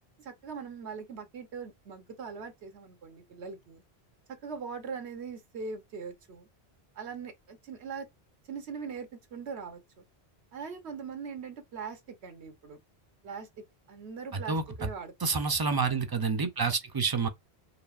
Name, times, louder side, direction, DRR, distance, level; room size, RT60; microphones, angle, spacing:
voice 1, 0.2-3.8 4.4-6.5 7.0-8.1 8.5-10.0 10.5-12.8 13.2-15.4, right 5 dB, 85° right, 1.2 m, -41 dB
voice 2, 14.3-14.9 15.2-17.3, right 4 dB, 35° right, 0.4 m, -28 dB
4.9 x 2.8 x 2.4 m
omnidirectional pair, 1.1 m